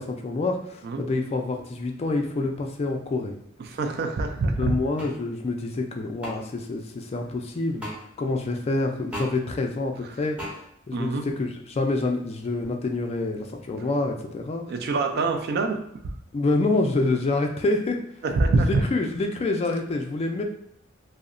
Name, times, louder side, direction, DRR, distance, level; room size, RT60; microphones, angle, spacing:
voice 1, 0.0-3.4 4.6-7.9 8.2-14.7 16.3-18.0 18.5-20.4, left 2 dB, 30° left, 3 dB, 0.3 m, -27 dB
voice 2, 3.7-4.8 10.9-11.3 14.7-16.1 18.2-18.8, right 3 dB, 50° right, 5 dB, 0.3 m, -25 dB
sound 1, 5.0-5.1 6.2-6.3 7.8-8.0 9.1-9.3 10.4-10.5, equal, 5° right, 0.6 m, -34 dB
2.7 x 2.0 x 2.5 m, 0.77 s
head